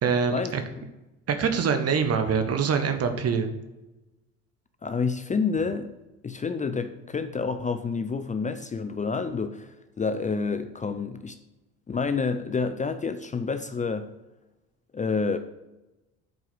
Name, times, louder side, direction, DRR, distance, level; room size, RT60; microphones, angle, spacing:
voice 1, 0.0-0.6 1.3-3.5, right 6 dB, 45° right, 8 dB, 1.4 m, -24 dB
voice 2, 4.8-5.9 6.2-11.4 11.9-14.1 14.9-15.4, left 4 dB, 20° left, 10 dB, 0.6 m, -28 dB
8.1 x 4.7 x 6.3 m, 1.0 s
supercardioid pair, 75°, 34 cm